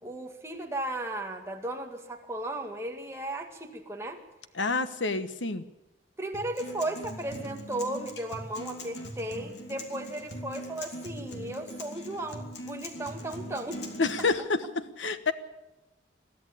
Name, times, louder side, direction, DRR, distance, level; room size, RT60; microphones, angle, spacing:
voice 1, 0.0-4.2 6.2-13.8, right 1 dB, 15° right, 3 dB, 2.0 m, -35 dB
voice 2, 4.6-5.6 14.0-15.3, left 3 dB, 85° left, 11 dB, 1.3 m, -28 dB
Acoustic guitar, 6.3-14.3, equal, 65° left, 3.0 m, -41 dB
22.5 x 14.0 x 8.5 m, 0.99 s
head